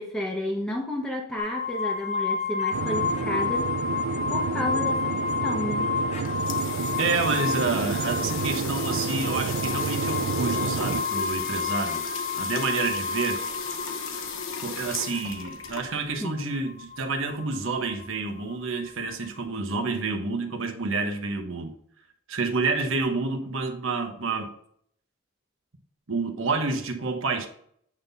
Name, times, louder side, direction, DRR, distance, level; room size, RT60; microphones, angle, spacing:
voice 1, 0.0-3.7 4.3-5.9 16.2-16.5, left 1 dB, 5° left, 1.0 m, -32 dB
sound 1, 1.4-19.4, left 5 dB, 30° left, 0.7 m, -31 dB
sound 2, 2.7-11.0, right 5 dB, 80° right, 0.4 m, -30 dB
sound 3, 6.0-16.2, left 6 dB, 65° left, 0.9 m, -36 dB
voice 2, 7.0-12.0 12.3-13.4 14.6-21.7 22.3-24.5 26.1-27.5, right 3 dB, 65° right, 1.1 m, -29 dB
8.7 x 3.9 x 4.0 m
head